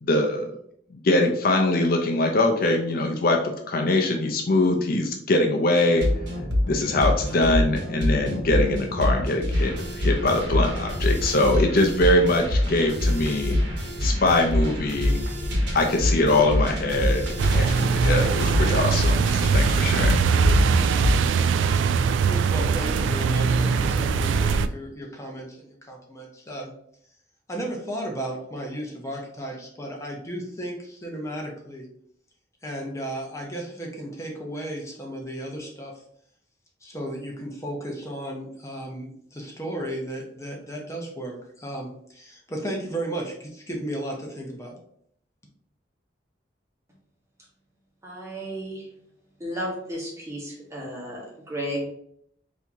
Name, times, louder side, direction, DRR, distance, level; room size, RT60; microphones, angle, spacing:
voice 1, 0.0-0.5 0.9-6.1 6.7-13.6 14.0-15.2 15.7-20.2, left 2 dB, 50° left, 3 dB, 0.5 m, -23 dB
sound 1, 5.8-21.3, left 1 dB, 70° right, 1.2 m, -25 dB
sound 2, 17.4-24.7, right 5 dB, 90° right, 0.3 m, -22 dB
voice 2, 22.2-26.7 27.5-31.9 32.6-35.9 36.8-44.8, right 1 dB, 15° left, 0 dB, 0.9 m, -34 dB
voice 3, 48.0-48.8 49.4-51.9, equal, 15° right, -3 dB, 1.3 m, -33 dB
4.4 x 2.8 x 3.5 m, 0.67 s
head